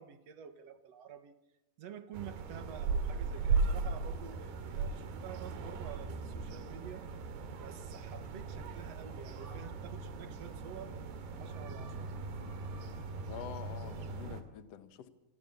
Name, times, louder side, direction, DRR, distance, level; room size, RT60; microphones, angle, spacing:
voice 1, 0.0-1.4 1.8-7.1 7.6-11.0 11.4-12.1, right 8 dB, 55° right, 10 dB, 1.9 m, -49 dB
sound 1, 2.1-14.4, right 4 dB, 85° right, 4.1 m, -37 dB
voice 2, 13.2-15.1, left 10 dB, 55° left, 10 dB, 2.0 m, -47 dB
27.5 x 24.0 x 7.0 m, 0.95 s
omnidirectional pair, 4.5 m